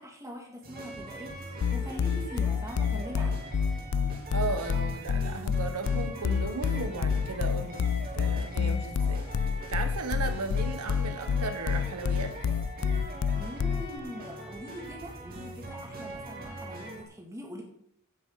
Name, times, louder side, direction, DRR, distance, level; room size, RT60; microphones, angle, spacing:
voice 1, 0.0-3.4 13.3-17.6, equal, 15° right, 0 dB, 2.7 m, -43 dB
sound 1, 0.6-17.0, right 1 dB, 40° right, 3.2 m, -42 dB
sound 2, 1.6-14.0, left 6 dB, 75° left, 0.4 m, -28 dB
voice 2, 4.3-7.8 8.1-12.3, right 4 dB, 90° right, 8 dB, 1.4 m, -35 dB
16.0 x 8.6 x 4.1 m, 0.71 s
head